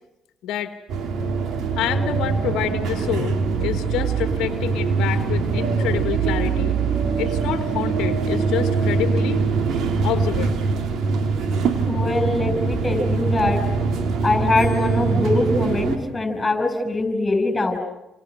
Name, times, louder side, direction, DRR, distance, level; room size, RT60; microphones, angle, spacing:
voice 1, 0.4-0.8 1.8-6.8 7.2-9.4 10.0-10.6, left 11 dB, 80° left, 9 dB, 1.3 m, -27 dB
sound 1, 0.9-16.0, right 4 dB, 70° right, 3.6 m, -23 dB
voice 2, 11.9-13.6 14.2-17.8, left 2 dB, 25° left, 8 dB, 7.1 m, -22 dB
29.0 x 27.5 x 6.5 m, 0.90 s
supercardioid pair, 60°, 0 cm